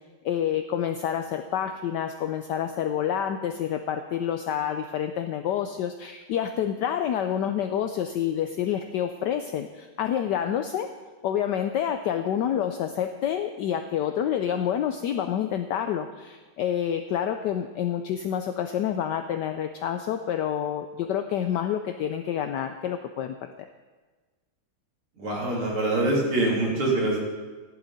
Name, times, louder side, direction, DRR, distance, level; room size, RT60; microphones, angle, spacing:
voice 1, 0.2-10.9 11.2-23.7, left 9 dB, 75° left, 7 dB, 1.1 m, -28 dB
voice 2, 25.2-27.2, right 2 dB, 90° right, -4 dB, 4.0 m, -24 dB
14.5 x 11.0 x 4.1 m, 1.3 s
omnidirectional pair, 2.3 m